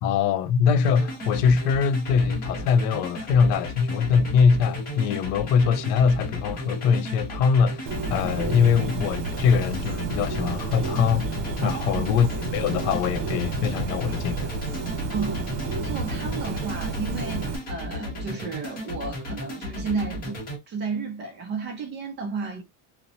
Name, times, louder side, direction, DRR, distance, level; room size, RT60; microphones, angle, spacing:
voice 1, 0.0-11.3 11.6-14.5, left 6 dB, 75° left, 0.6 m, -22 dB
sound 1, 0.8-20.6, left 1 dB, 20° left, 0.7 m, -35 dB
Bird, 7.9-17.6, right 4 dB, 70° right, 1.0 m, -31 dB
voice 2, 11.6-12.1 14.9-20.4 20.7-22.6, right 5 dB, 25° right, 0.4 m, -33 dB
2.9 x 2.0 x 2.6 m
cardioid pair, 175°, 46 cm